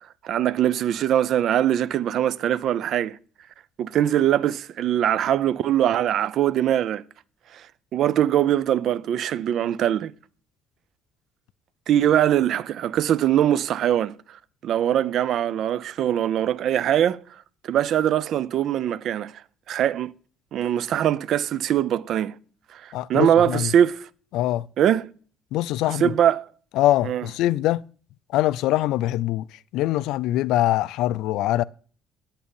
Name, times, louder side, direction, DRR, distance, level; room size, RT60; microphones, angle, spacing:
voice 1, 0.2-3.2 3.8-7.0 7.5-7.6 7.9-10.1 11.9-14.1 14.6-17.2 17.6-19.3 19.7-20.1 20.5-22.3 22.7-22.8 23.1-24.1 24.8-25.1 25.9-26.4 27.0-27.2, right 10 dB, 55° right, 0.5 m, -22 dB
voice 2, 22.9-23.7 24.3-24.7 25.5-26.1 26.8-27.8 28.3-29.4 29.7-31.6, left 14 dB, 80° left, 0.4 m, -23 dB
9.3 x 8.9 x 7.1 m
cardioid pair, 160°, 0 cm